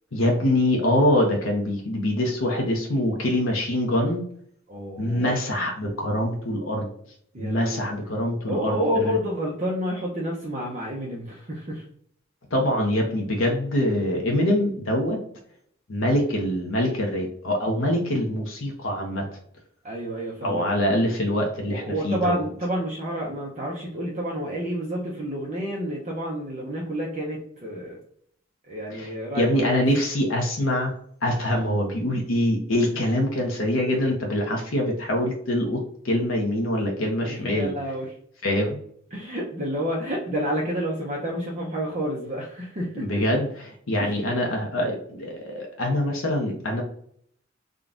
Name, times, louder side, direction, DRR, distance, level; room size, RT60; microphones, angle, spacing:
voice 1, 0.1-4.2 5.0-6.9 7.4-9.2 12.5-15.2 15.9-19.2 20.4-22.4 28.9-29.1 29.4-30.9 31.2-37.7 38.4-38.8 43.0-43.5 43.9-46.8, left 1 dB, 80° left, 1 dB, 0.9 m, -24 dB
voice 2, 4.7-5.3 7.3-7.8 8.5-11.8 19.8-20.6 21.7-28.0 28.7-29.8 32.9-33.0 37.2-38.2 39.1-43.2 44.0-44.2, equal, 35° right, -3 dB, 0.8 m, -29 dB
3.8 x 2.3 x 3.7 m, 0.64 s
head